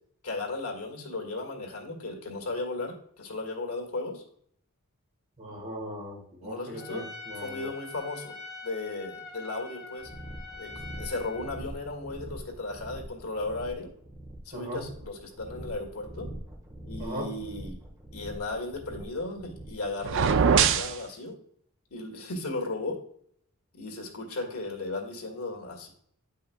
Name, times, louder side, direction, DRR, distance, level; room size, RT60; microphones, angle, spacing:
voice 1, 0.2-4.2 6.4-7.1 7.4-8.3 8.6-10.1 10.6-13.9 14.5-16.3 16.8-17.8 18.1-21.4 21.9-23.0 23.7-25.9, left 2 dB, 90° left, 1 dB, 1.8 m, -36 dB
voice 2, 5.4-7.7 14.5-14.8 17.0-17.3, equal, 35° right, -1 dB, 1.8 m, -38 dB
Trumpet, 6.8-11.7, left 4 dB, ahead, 1.8 m, -44 dB
sound 1, 10.0-20.5, right 1 dB, 15° right, 1.3 m, -44 dB
sound 2, 20.0-21.0, right 6 dB, 60° right, 0.4 m, -22 dB
9.2 x 5.5 x 2.2 m, 0.65 s
head